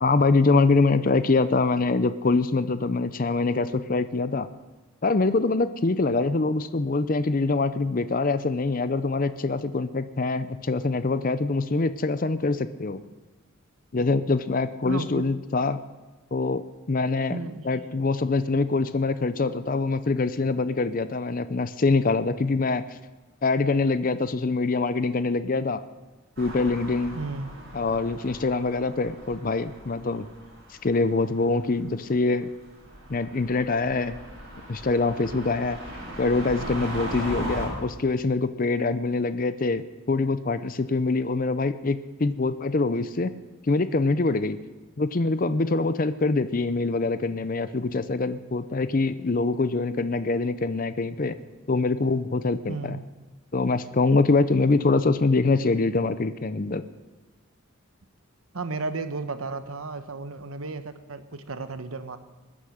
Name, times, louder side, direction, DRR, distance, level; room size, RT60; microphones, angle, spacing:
voice 1, 0.0-4.5 5.0-13.0 13.9-15.8 16.3-17.4 17.6-22.8 23.4-25.8 26.4-27.2 27.7-30.3 30.8-32.5 33.1-34.2 34.7-35.8 36.2-43.3 43.7-44.6 45.0-51.4 51.7-53.0 53.5-56.8, left 3 dB, 40° left, 13 dB, 0.5 m, -24 dB
voice 2, 14.8-15.3 17.3-17.7 27.1-27.5 52.7-53.0 58.5-62.2, right 3 dB, 85° right, 10 dB, 1.1 m, -33 dB
sound 1, 26.4-37.7, equal, 50° right, 6.1 m, -38 dB
20.5 x 10.0 x 6.4 m, 1.2 s
head